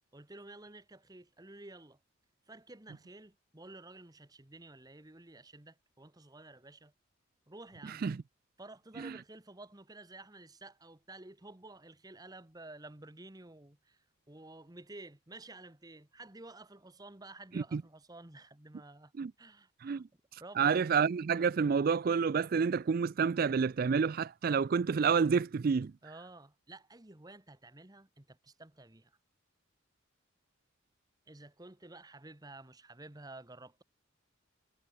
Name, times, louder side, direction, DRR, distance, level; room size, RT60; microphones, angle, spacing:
voice 1, 0.1-2.0 2.5-6.9 7.5-8.0 8.6-19.1 19.4-20.0 20.4-20.8 26.0-29.2 31.3-33.8, right 2 dB, 20° right, 1.2 m, -52 dB
voice 2, 20.6-25.9, right 6 dB, 45° right, 0.3 m, -29 dB
head